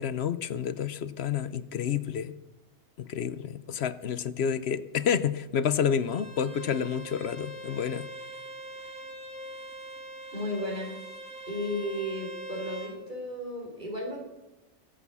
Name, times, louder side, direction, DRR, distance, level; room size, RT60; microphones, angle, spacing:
voice 1, 0.0-2.4 3.0-8.1, left 8 dB, 65° left, 15 dB, 0.9 m, -29 dB
Bowed string instrument, 6.0-12.9, right 1 dB, 5° right, 3.1 m, -42 dB
voice 2, 10.3-11.0 11.5-14.2, left 1 dB, 40° right, -1 dB, 4.6 m, -34 dB
21.5 x 8.4 x 7.0 m, 0.99 s
omnidirectional pair, 1.2 m